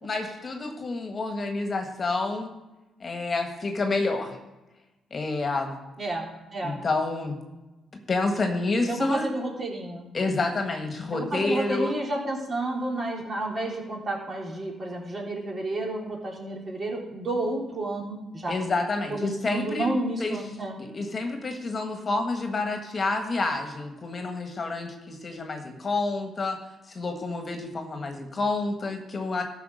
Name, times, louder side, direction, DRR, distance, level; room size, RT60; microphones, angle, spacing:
voice 1, 0.0-2.5 3.0-4.4 5.1-5.7 6.6-7.4 7.9-9.3 10.1-11.9 18.5-19.9 20.2-26.6 26.8-29.4, left 3 dB, 35° left, 4 dB, 1.6 m, -29 dB
voice 2, 6.0-6.8 8.9-10.1 11.1-18.5 19.1-20.8, right 1 dB, 35° right, -1 dB, 3.6 m, -31 dB
14.0 x 5.8 x 6.5 m, 1.1 s
cardioid pair, 90°, 0 cm